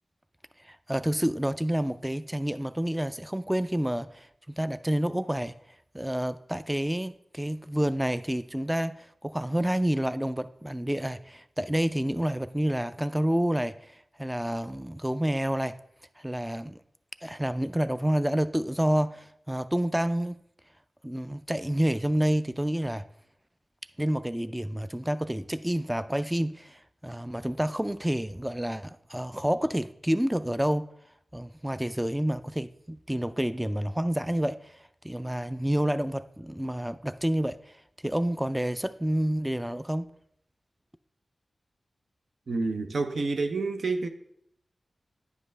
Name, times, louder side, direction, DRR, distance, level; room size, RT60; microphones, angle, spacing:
voice 1, 0.6-5.5 5.9-15.8 16.2-16.8 17.2-20.4 21.0-23.1 24.0-30.9 31.3-40.1, right 1 dB, 10° right, 0.3 m, -29 dB
voice 2, 42.5-44.1, right 3 dB, 75° right, 0.5 m, -28 dB
9.4 x 5.3 x 3.3 m
cardioid pair, 40°, 0 cm